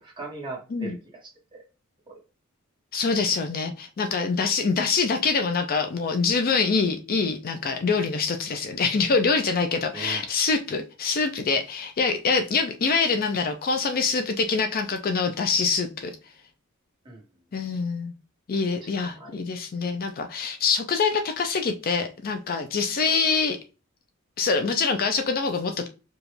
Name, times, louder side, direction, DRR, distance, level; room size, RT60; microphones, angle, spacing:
voice 1, 0.2-1.6 2.1-2.2 9.9-10.3 17.0-17.2 18.8-19.4, right 2 dB, 20° right, -2 dB, 1.5 m, -39 dB
voice 2, 2.9-16.2 17.5-18.1 18.5-23.6 24.4-25.9, left 4 dB, 45° left, 6 dB, 0.4 m, -25 dB
5.0 x 2.4 x 3.1 m, 0.32 s
head